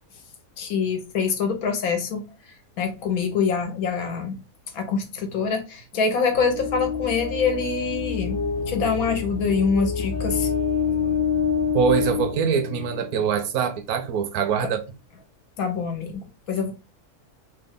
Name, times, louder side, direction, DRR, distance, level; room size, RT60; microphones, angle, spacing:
voice 1, 0.6-2.2 2.8-4.4 4.7-10.5 15.6-16.7, left 5 dB, 75° left, 1.2 m, -25 dB
sound 1, 6.3-13.3, left 6 dB, 55° left, 1.0 m, -27 dB
voice 2, 11.7-14.8, right 7 dB, 85° right, 1.1 m, -23 dB
3.2 x 2.2 x 3.5 m
omnidirectional pair, 1.5 m